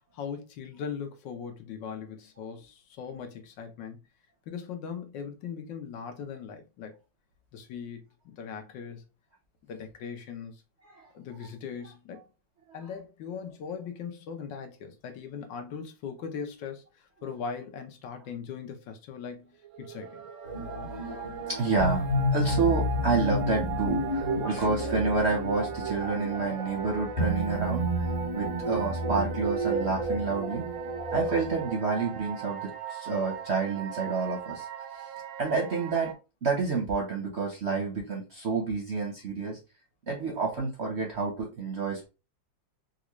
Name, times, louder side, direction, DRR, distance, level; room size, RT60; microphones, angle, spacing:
voice 1, 0.1-4.0 4.5-6.9 7.5-9.0 9.6-10.6 11.1-12.2 12.7-20.3 24.5-24.8, left 6 dB, 75° left, 1.4 m, -39 dB
sound 1, 19.6-36.1, right 8 dB, 90° right, 0.6 m, -40 dB
sound 2, 20.4-31.7, equal, 40° left, 1.8 m, -31 dB
voice 2, 21.4-22.1 22.3-27.8 28.3-30.7 31.1-34.7 35.4-36.1 36.4-39.6 40.1-42.1, right 4 dB, 55° right, 0.8 m, -29 dB
4.0 x 2.5 x 3.0 m
omnidirectional pair, 2.0 m